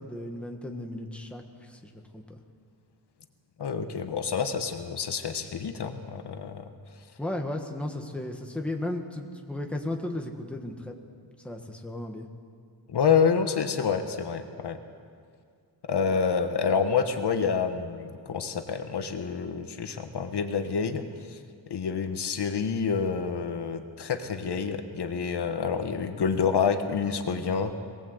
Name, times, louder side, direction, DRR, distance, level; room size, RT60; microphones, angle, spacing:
voice 1, 0.0-2.4 7.2-10.9 11.4-12.3, left 1 dB, 5° left, 2 dB, 1.5 m, -35 dB
voice 2, 3.6-6.6 12.9-14.8 15.9-21.4 21.7-27.8, left 6 dB, 60° left, 7 dB, 1.3 m, -28 dB
22.0 x 18.5 x 8.0 m, 2.2 s
wide cardioid pair, 170°, 45 cm